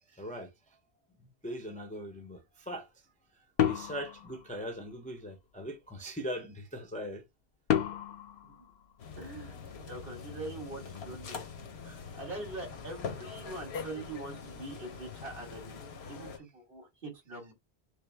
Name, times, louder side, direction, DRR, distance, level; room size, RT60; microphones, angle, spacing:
voice 1, 0.1-0.8 1.2-7.2, equal, 10° left, 0.5 m, -41 dB
sound 1, 3.6-5.1 7.7-9.5, left 10 dB, 55° left, 0.6 m, -32 dB
sound 2, 9.0-16.4, left 6 dB, 85° left, 1.1 m, -43 dB
voice 2, 9.2-9.6 9.8-11.4 11.8-15.7 16.1-17.5, right 2 dB, 65° right, 1.9 m, -43 dB
5.0 x 2.0 x 3.3 m
omnidirectional pair, 1.0 m